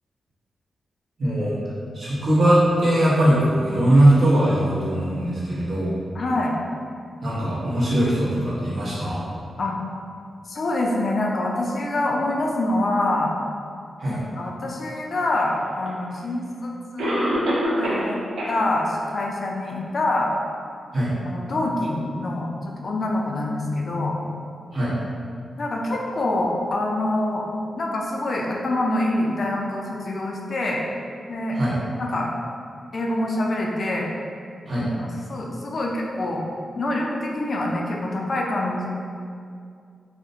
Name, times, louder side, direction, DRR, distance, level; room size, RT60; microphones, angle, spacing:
voice 1, 1.2-1.6 1.9-5.9 7.2-9.2 14.0-14.2 20.9-21.1 24.7-24.9 31.5-31.8 34.7-34.9, right 1 dB, 60° right, -9 dB, 1.0 m, -20 dB
voice 2, 6.1-6.5 9.6-9.7 10.5-13.3 14.1-17.4 17.7-18.2 18.5-20.3 21.3-24.2 25.6-27.5 27.8-30.8 31.3-31.6 32.0-32.3 32.9-34.1 34.8-36.4 36.8-38.9, left 1 dB, 60° left, -1 dB, 0.4 m, -25 dB
Cough, 15.9-16.0 17.0-18.1 18.4-18.5 19.0-19.1 19.7-19.8, equal, 80° right, 0.4 m, -24 dB
2.4 x 2.1 x 2.6 m, 2.3 s
supercardioid pair, 40°, 0 cm